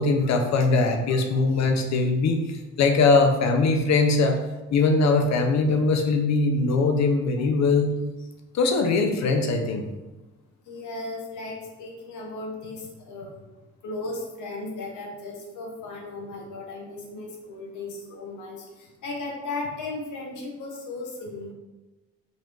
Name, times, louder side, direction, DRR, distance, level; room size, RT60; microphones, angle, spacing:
voice 1, 0.0-4.4 4.7-7.9 8.5-9.8, left 3 dB, 65° left, 4 dB, 0.7 m, -21 dB
voice 2, 10.7-13.4 13.8-21.5, left 2 dB, 80° left, 0 dB, 1.1 m, -36 dB
4.0 x 2.5 x 4.6 m, 1.1 s
cardioid pair, 90°, 30 cm